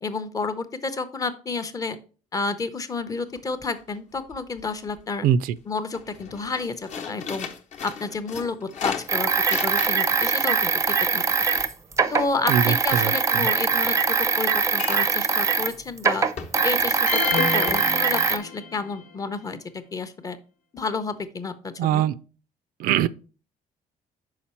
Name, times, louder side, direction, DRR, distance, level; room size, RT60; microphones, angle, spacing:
voice 1, 0.0-2.0 2.3-5.3 5.7-7.5 7.8-11.2 12.1-16.3 16.6-19.6 19.9-20.4 20.7-22.0, left 4 dB, 25° left, 0.6 m, -30 dB
sound 1, 3.0-3.1 3.4-3.9 4.2-5.0 5.4-5.6 5.9-10.2 10.5-12.9 14.7-15.3 15.7-15.8 16.4-16.9 17.3-17.4 17.7-17.8, left 7 dB, 50° left, 0.9 m, -36 dB
voice 2, 5.2-5.6 12.5-13.5 21.8-22.1 22.8-23.1, right 9 dB, 80° right, 0.4 m, -22 dB
sound 2, 9.1-15.7 16.0-18.4, right 5 dB, 20° right, 0.4 m, -22 dB
sound 3, 17.1-18.9, left 5 dB, 90° left, 1.1 m, -28 dB
5.7 x 4.7 x 4.3 m
cardioid pair, 150°, 15 cm